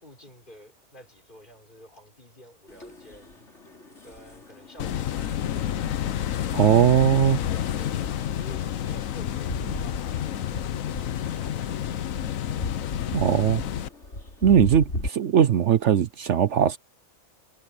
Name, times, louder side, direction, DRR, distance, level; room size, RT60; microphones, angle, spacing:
voice 1, 0.0-3.5 4.0-5.5 7.5-12.5, left 1 dB, 35° left, 6.1 m, -50 dB
sound 1, 2.7-15.1, left 1 dB, 55° left, 4.3 m, -38 dB
sound 2, 4.8-13.9, left 11 dB, 80° left, 1.2 m, -29 dB
voice 2, 6.5-7.4 13.1-13.6 14.4-16.8, right 9 dB, 65° right, 1.0 m, -19 dB
omnidirectional pair, 1.4 m